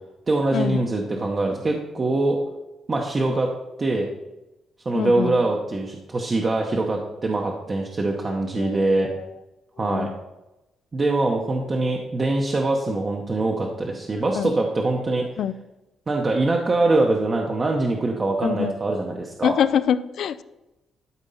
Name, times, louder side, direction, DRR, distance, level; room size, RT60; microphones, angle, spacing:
voice 1, 0.3-2.4 2.9-3.5 3.8-4.1 4.8-9.1 9.8-10.1 10.9-15.3 16.1-19.5, right 2 dB, 25° right, 0 dB, 0.8 m, -23 dB
voice 2, 4.9-5.4 8.6-9.2 9.8-10.1 14.4-14.6 15.4-15.6 18.4-18.7 19.4-20.4, left 9 dB, 60° left, 15 dB, 0.4 m, -25 dB
12.5 x 4.3 x 5.5 m, 0.97 s
cardioid pair, 170°, 0 cm